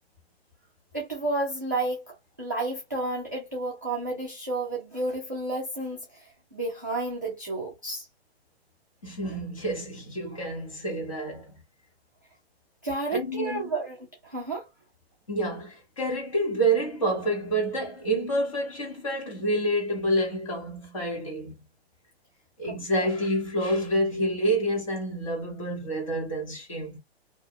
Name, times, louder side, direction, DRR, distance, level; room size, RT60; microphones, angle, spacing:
voice 1, 0.9-6.3 6.5-8.1 12.8-14.0 14.2-14.7 22.7-23.1, right 2 dB, 20° right, 0.4 m, -31 dB
voice 2, 9.0-11.5 13.1-13.7 15.3-21.6 22.6-27.0, right 1 dB, 30° left, 1.2 m, -28 dB
2.7 x 2.2 x 3.7 m
hypercardioid pair, 180°, 32 cm